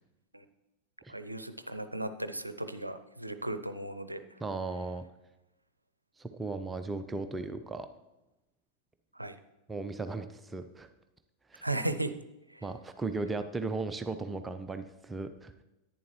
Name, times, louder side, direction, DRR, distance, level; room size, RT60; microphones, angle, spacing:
voice 1, 1.1-4.2 9.2-9.3 11.6-12.1 12.5-12.6, right 1 dB, 85° right, 10 dB, 0.5 m, -36 dB
voice 2, 4.4-5.0 6.2-7.9 9.7-10.9 11.5-11.7 12.6-15.6, right 3 dB, 15° right, 9 dB, 0.5 m, -36 dB
10.5 x 9.4 x 3.1 m, 0.96 s
figure-of-eight pair, 90°, 0 cm